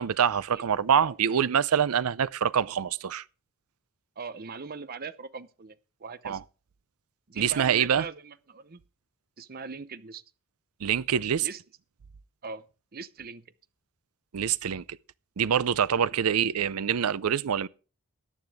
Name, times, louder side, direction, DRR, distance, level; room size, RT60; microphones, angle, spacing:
voice 1, 0.0-3.2 6.2-6.4 7.4-8.0 10.8-11.5 14.3-15.0 15.4-17.7, right 8 dB, 75° right, 0.5 m, -25 dB
voice 2, 4.2-6.4 7.3-8.8 9.4-10.2 11.4-11.6 12.4-12.6 12.9-13.4 16.0-16.4, right 5 dB, 45° right, 0.7 m, -40 dB
14.0 x 9.8 x 3.5 m
head